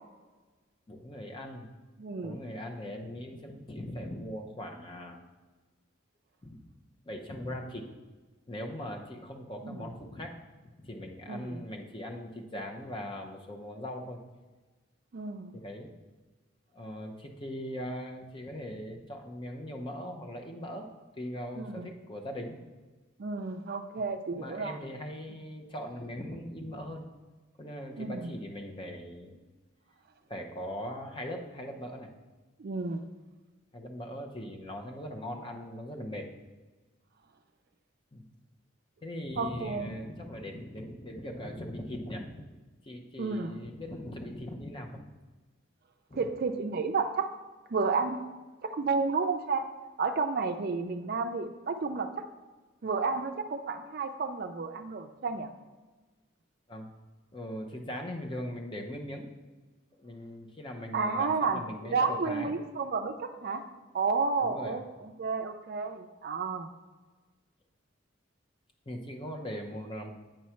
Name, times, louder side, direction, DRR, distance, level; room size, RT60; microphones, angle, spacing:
voice 1, 0.9-1.7 2.2-5.2 6.4-6.6 7.1-7.8 8.5-10.4 10.6-14.2 15.5-15.9 16.7-20.9 21.2-22.6 24.3-27.0 27.6-29.4 30.3-32.1 33.7-36.3 38.1-38.3 39.0-42.4 42.8-45.0 46.1-46.3 56.7-56.9 57.3-59.3 60.0-62.5 64.4-64.8 68.9-70.1, equal, 25° left, 2 dB, 0.7 m, -40 dB
voice 2, 2.0-2.4 9.6-9.9 11.3-11.6 15.1-15.5 21.6-21.9 23.2-24.8 28.0-28.3 32.6-33.1 39.4-39.9 43.2-43.5 46.1-47.3 47.7-48.2 48.6-49.7 50.0-52.1 52.8-55.5 60.9-63.6 63.9-66.7, right 4 dB, 50° right, 7 dB, 0.4 m, -31 dB
8.8 x 3.1 x 5.7 m, 1.3 s
head